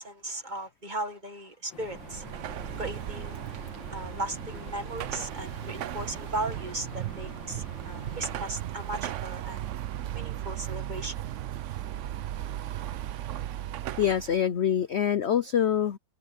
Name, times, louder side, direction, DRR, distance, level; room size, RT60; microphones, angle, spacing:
voice 1, 0.0-2.2 2.8-3.4 3.9-9.7 10.1-11.2, right 2 dB, 25° right, 1.6 m, -37 dB
sound 1, 1.7-8.4, left 7 dB, 85° left, 2.4 m, -47 dB
Car passing by / Traffic noise roadway noise / Engine, 1.8-14.4, right 12 dB, 80° right, 0.6 m, -36 dB
voice 2, 14.0-16.0, left 9 dB, 65° left, 0.6 m, -25 dB
omnidirectional pair, 2.0 m